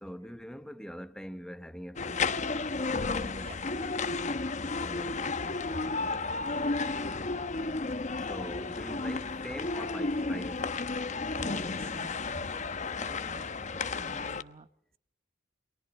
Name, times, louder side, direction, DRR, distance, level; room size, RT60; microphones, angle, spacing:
voice 1, 0.0-2.6 4.8-5.1 6.4-6.9 8.2-10.8 12.9-14.3, equal, 5° left, 1.1 m, -44 dB
sound 1, 2.0-14.4, left 3 dB, 40° left, 0.9 m, -33 dB
voice 2, 3.0-4.2 4.8-6.1 11.4-12.5 13.2-13.5 14.0-14.7, right 1 dB, 30° right, 1.1 m, -47 dB
29.5 x 23.5 x 4.3 m
head